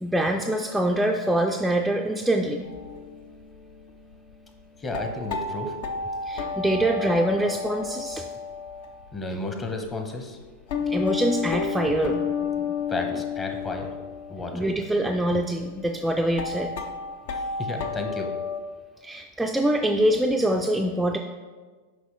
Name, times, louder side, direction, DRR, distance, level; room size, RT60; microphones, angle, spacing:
voice 1, 0.0-2.7 6.3-8.3 10.9-12.3 12.5-12.7 14.5-16.7 19.0-21.2, right 1 dB, 5° right, 2 dB, 0.3 m, -24 dB
sound 1, 2.6-9.1 9.8-9.9 10.4-18.6, left 6 dB, 65° left, 0.6 m, -32 dB
voice 2, 4.8-5.8 9.1-10.4 12.9-13.9 14.3-14.7 17.3-18.3, left 2 dB, 20° left, 3 dB, 0.9 m, -32 dB
6.3 x 4.9 x 3.1 m, 1.4 s
hypercardioid pair, 105°, 0 cm